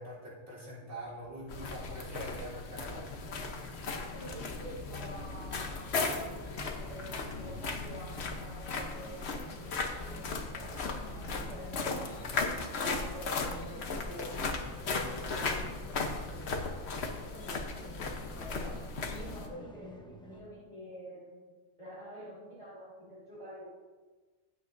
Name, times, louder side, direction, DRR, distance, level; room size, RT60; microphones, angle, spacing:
voice 1, 0.0-3.1 3.8-3.9, right 1 dB, 55° right, -5 dB, 4.0 m, -44 dB
sound 1, 1.0-20.5, left 1 dB, 10° left, 0.3 m, -50 dB
sound 2, 1.5-19.5, left 3 dB, 55° left, 1.1 m, -37 dB
voice 2, 4.1-12.4 12.7-15.8 16.2-23.7, equal, 30° right, -9 dB, 3.5 m, -48 dB
15.0 x 8.6 x 2.6 m, 1.4 s
omnidirectional pair, 1.4 m